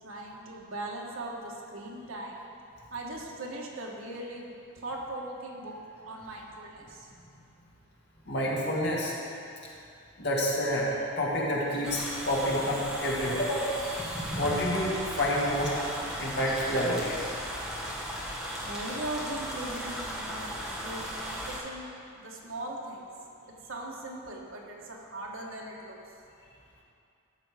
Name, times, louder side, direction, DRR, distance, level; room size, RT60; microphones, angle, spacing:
voice 1, 0.0-2.4 2.9-4.5 4.7-5.8 6.1-7.1 18.6-21.9 22.1-23.1 23.7-26.1, right 1 dB, 80° right, -1 dB, 1.5 m, -39 dB
voice 2, 8.3-9.1 10.2-13.8 14.4-15.8 16.2-17.2, equal, 55° left, -5 dB, 2.0 m, -28 dB
sound 1, 11.8-21.6, equal, ahead, 1.4 m, -36 dB
13.0 x 6.7 x 5.0 m, 2.6 s
head